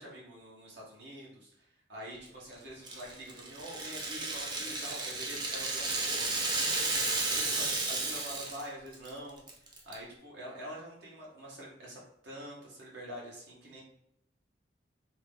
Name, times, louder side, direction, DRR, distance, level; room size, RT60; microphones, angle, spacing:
voice 1, 0.0-6.7 7.1-9.4 9.8-13.8, equal, 80° right, -4 dB, 1.2 m, -46 dB
Rattle (instrument), 2.8-8.7 8.9-9.1 9.5-9.9, right 3 dB, 25° right, 0.4 m, -33 dB
2.8 x 2.5 x 3.5 m, 0.75 s
head